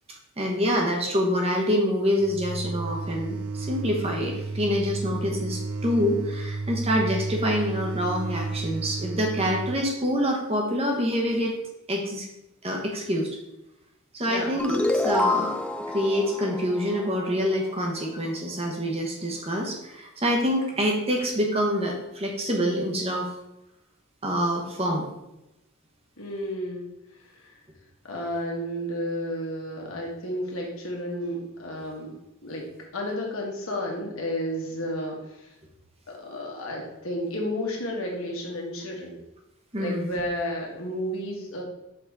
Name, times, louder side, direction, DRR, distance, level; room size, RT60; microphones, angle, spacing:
voice 1, 0.4-11.5 11.9-12.3 12.6-13.3 14.1-15.6 15.9-23.3 24.2-25.1 39.7-40.2, equal, 25° right, 0 dB, 1.1 m, -26 dB
sound 1, 2.2-9.8, right 3 dB, 90° right, 0.5 m, -32 dB
sound 2, 14.6-17.8, left 2 dB, 5° left, 0.3 m, -28 dB
voice 2, 26.2-26.9 27.4-27.5 28.0-32.6 32.9-35.5 36.1-39.1 39.8-41.6, equal, 70° left, -1 dB, 1.6 m, -32 dB
5.9 x 4.1 x 4.7 m, 0.91 s
head